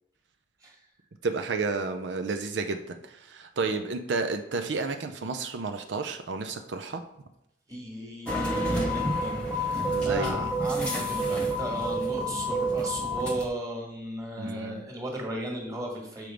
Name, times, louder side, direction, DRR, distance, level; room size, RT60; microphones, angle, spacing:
voice 1, 1.2-7.0 9.9-10.5 14.4-14.8, right 4 dB, 85° right, 6 dB, 0.5 m, -31 dB
voice 2, 7.7-16.3, right 1 dB, 20° right, 0 dB, 1.7 m, -36 dB
sound 1, 8.3-13.5, right 1 dB, 5° left, 1.1 m, -28 dB
6.8 x 4.5 x 5.1 m, 0.84 s
head